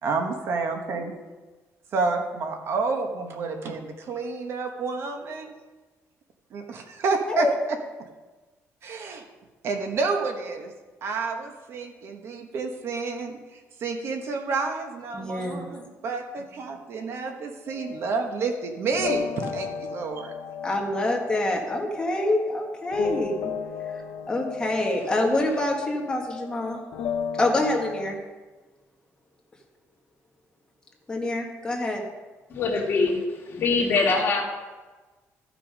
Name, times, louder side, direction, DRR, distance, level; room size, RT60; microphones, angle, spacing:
voice 1, 0.0-1.2 1.9-5.5 6.5-7.8 8.8-9.2 9.6-10.7 11.0-20.3, right 4 dB, 50° right, 5 dB, 1.2 m, -29 dB
voice 2, 15.1-15.7 20.6-23.5 24.3-26.8 27.4-28.2 31.1-32.0, left 1 dB, 15° left, 0 dB, 1.6 m, -26 dB
sound 1, 17.7-28.1, left 7 dB, 75° left, 0.9 m, -35 dB
voice 3, 32.5-33.2 33.5-34.4, left 4 dB, 40° left, -1 dB, 2.2 m, -23 dB
14.0 x 6.2 x 5.1 m, 1.3 s
cardioid pair, 165°, 5 cm